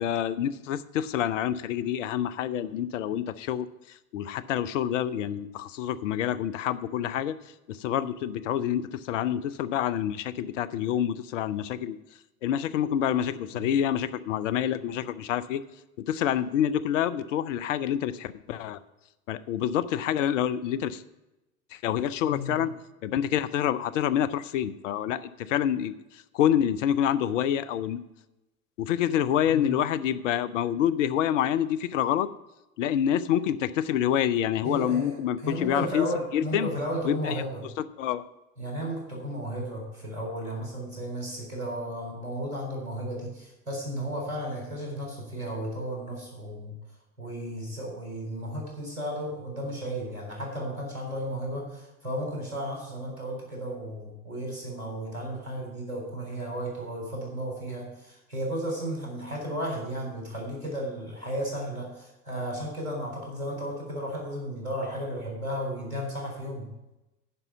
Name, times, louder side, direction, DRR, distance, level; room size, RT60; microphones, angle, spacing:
voice 1, 0.0-3.7 4.1-7.3 7.7-12.0 12.4-15.6 16.1-18.8 19.3-21.0 21.7-22.7 23.0-28.0 28.8-32.3 32.8-36.1 36.3-36.7 37.0-37.4 38.0-38.3, left 10 dB, 60° left, 14 dB, 0.7 m, -27 dB
voice 2, 22.2-22.7 29.5-29.7 34.6-35.1 35.4-37.6 38.6-46.8 47.2-66.7, equal, 85° right, -1 dB, 3.8 m, -34 dB
9.8 x 5.5 x 7.0 m, 0.95 s
figure-of-eight pair, 80°, 43 cm